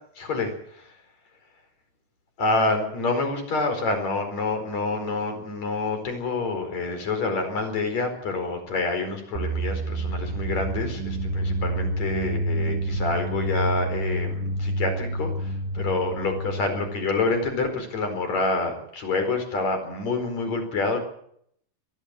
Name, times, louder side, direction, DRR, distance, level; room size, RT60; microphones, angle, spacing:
voice 1, 0.2-1.0 2.4-21.0, left 3 dB, 35° left, 6 dB, 5.4 m, -27 dB
sound 1, 9.4-17.1, right 1 dB, 70° right, 3.4 m, -28 dB
22.5 x 15.0 x 7.8 m, 0.67 s
omnidirectional pair, 5.7 m